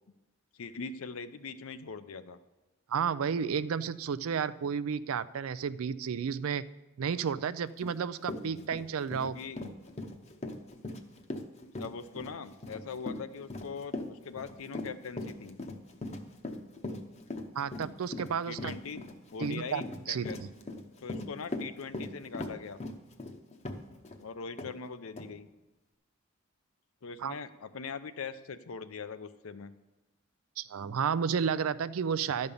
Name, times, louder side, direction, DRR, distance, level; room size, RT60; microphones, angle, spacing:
voice 1, 0.5-2.4 8.4-8.8 9.2-9.6 11.8-15.6 18.5-19.1 19.3-20.4 21.0-22.8 24.2-25.5 27.0-29.7, left 5 dB, 85° left, 11 dB, 0.6 m, -41 dB
voice 2, 2.9-6.6 7.0-9.4 17.5-18.7 19.4-20.5 27.2-27.4 30.6-32.5, right 7 dB, 85° right, 15 dB, 0.4 m, -32 dB
Run, 7.8-7.9 8.2-24.2 24.6-24.7 25.2-25.3, left 2 dB, 30° left, 0.8 m, -40 dB
12.0 x 5.4 x 6.9 m, 1.1 s
head